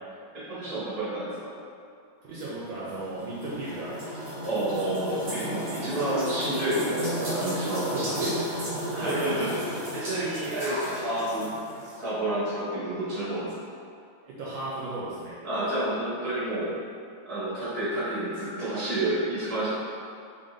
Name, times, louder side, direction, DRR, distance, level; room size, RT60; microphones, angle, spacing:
voice 1, 0.3-1.5 4.4-8.3 8.9-11.5 12.0-13.5 15.4-16.7 17.2-19.7, right 1 dB, 20° right, -11 dB, 1.0 m, -29 dB
voice 2, 2.2-4.3 7.8-8.5 8.9-9.3 14.2-15.3, right 2 dB, 75° right, -8 dB, 1.3 m, -36 dB
sound 1, 2.4-12.0, equal, 55° right, 0.7 m, -34 dB
3.9 x 3.2 x 2.5 m, 2.4 s
omnidirectional pair, 2.4 m